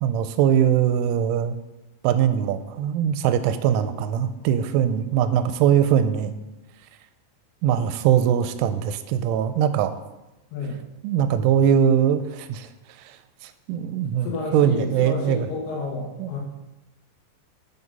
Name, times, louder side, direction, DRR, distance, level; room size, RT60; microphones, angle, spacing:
voice 1, 0.0-1.6 2.0-6.3 7.6-10.0 11.0-12.7 13.0-13.2 13.4-15.5 16.2-16.4, right 9 dB, 85° right, 11 dB, 3.0 m, -21 dB
voice 2, 10.5-10.8 14.2-16.4, left 3 dB, 70° left, -1 dB, 3.7 m, -30 dB
8.0 x 6.0 x 5.3 m, 1.0 s
omnidirectional pair, 5.6 m